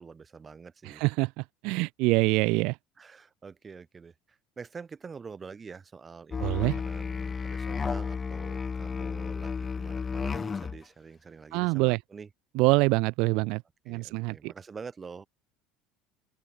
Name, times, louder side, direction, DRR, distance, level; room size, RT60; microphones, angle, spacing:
voice 1, 0.0-1.0 3.0-12.3 13.9-15.3, right 5 dB, 20° right, 3.3 m, -46 dB
voice 2, 0.8-2.8 6.4-6.8 11.5-12.0 12.6-14.5, right 26 dB, 65° right, 0.3 m, -25 dB
Musical instrument, 6.3-10.8, left 5 dB, 20° left, 0.9 m, -32 dB
open air
cardioid pair, 150°, 0 cm